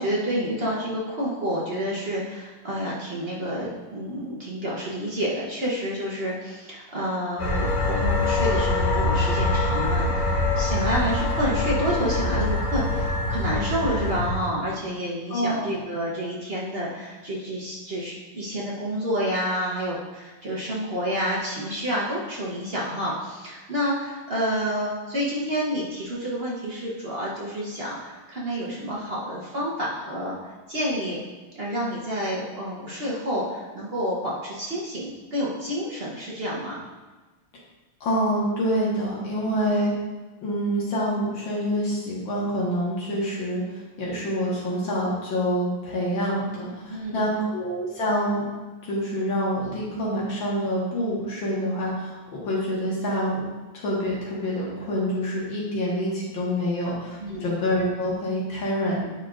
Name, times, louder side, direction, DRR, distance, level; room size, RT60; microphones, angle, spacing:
voice 1, 0.0-31.2 31.5-36.8 39.5-39.7 46.9-47.2 57.2-57.5, equal, 50° right, -5 dB, 0.7 m, -29 dB
sound 1, 7.4-14.3, left 2 dB, 85° left, 2.1 m, -24 dB
voice 2, 15.3-15.7 38.0-39.9 40.4-48.5 48.8-53.4 53.7-59.1, equal, 65° left, -5 dB, 2.1 m, -26 dB
8.7 x 4.5 x 2.4 m, 1.2 s
omnidirectional pair, 2.3 m